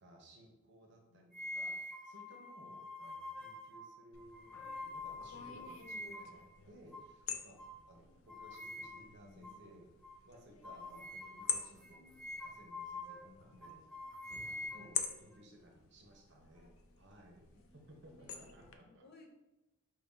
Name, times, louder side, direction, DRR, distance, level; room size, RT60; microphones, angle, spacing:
voice 1, 0.0-7.6 7.9-9.9 10.2-13.8 14.3-19.1, right 1 dB, 55° right, 1 dB, 0.8 m, -60 dB
voice 2, 1.1-1.6 7.7-8.5 14.7-14.9 17.5-18.5 18.8-19.3, left 1 dB, 45° left, -2 dB, 0.8 m, -64 dB
sound 1, 1.3-6.4 6.9-7.1 7.6-7.8 8.3-9.2 9.4-9.6 10.0-10.2 10.6-13.3 13.6-15.4, left 2 dB, 5° left, 0.3 m, -46 dB
sound 2, 4.1-18.8, left 8 dB, 70° left, 0.4 m, -47 dB
4.6 x 2.8 x 3.6 m, 1.0 s
head